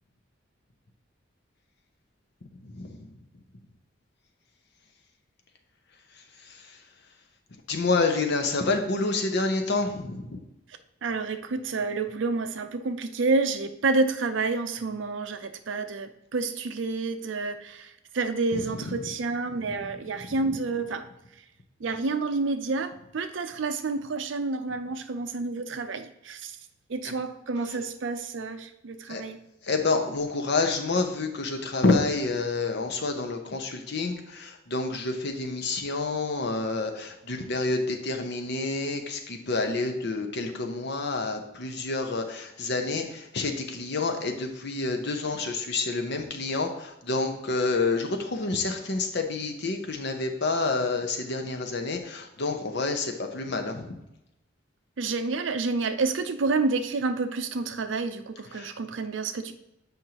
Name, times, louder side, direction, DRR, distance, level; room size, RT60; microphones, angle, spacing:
voice 1, 2.6-3.0 6.5-6.7 7.7-10.4 18.5-19.1 19.7-19.8 20.1-20.2 29.1-29.2 29.6-54.0 58.5-58.7, left 3 dB, 60° left, 4 dB, 0.9 m, -28 dB
voice 2, 11.0-21.0 21.8-26.5 26.9-29.4 55.0-59.5, right 3 dB, 75° right, 10 dB, 0.5 m, -29 dB
7.8 x 5.4 x 2.9 m, 0.88 s
head